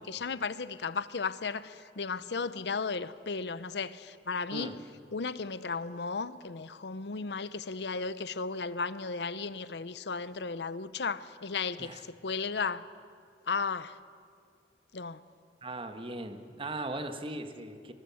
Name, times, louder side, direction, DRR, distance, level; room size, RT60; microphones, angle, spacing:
voice 1, 0.0-4.7 5.1-12.9 13.5-14.0 14.9-15.2, left 4 dB, 70° left, 0.7 m, -35 dB
voice 2, 4.5-4.8 11.8-12.0 15.6-17.9, right 2 dB, 30° right, 1.5 m, -38 dB
26.5 x 22.0 x 7.2 m
head